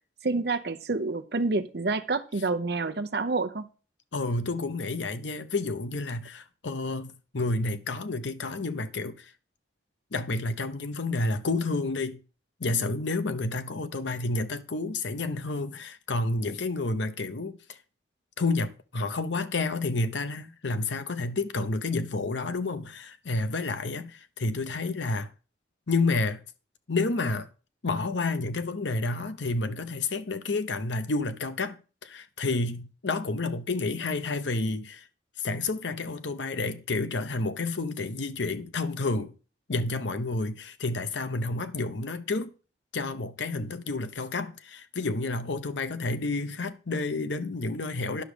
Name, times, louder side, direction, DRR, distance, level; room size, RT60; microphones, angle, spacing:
voice 1, 0.2-3.7, right 3 dB, 60° right, 0.7 m, -28 dB
voice 2, 4.1-9.3 10.1-12.2 12.6-17.6 18.4-25.3 25.9-26.4 26.9-27.5 27.8-31.8 32.0-35.0 35.4-39.3 39.7-42.5 42.9-48.2, left 3 dB, 85° left, 0.9 m, -30 dB
10.0 x 6.3 x 5.0 m
head